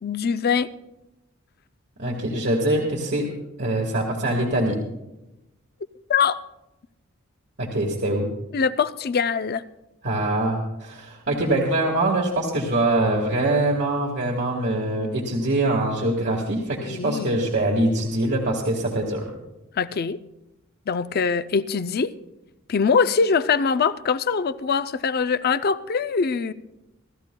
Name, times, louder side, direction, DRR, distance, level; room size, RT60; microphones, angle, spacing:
voice 1, 0.0-0.7 6.1-6.4 8.5-9.6 16.8-17.3 19.8-20.2 20.9-22.1 22.7-26.5, left 5 dB, 50° left, 13 dB, 0.5 m, -23 dB
voice 2, 2.0-3.3 3.6-4.8 7.6-8.3 10.0-19.3, right 1 dB, 55° right, -1 dB, 1.7 m, -23 dB
27.5 x 13.5 x 2.3 m, 0.96 s
head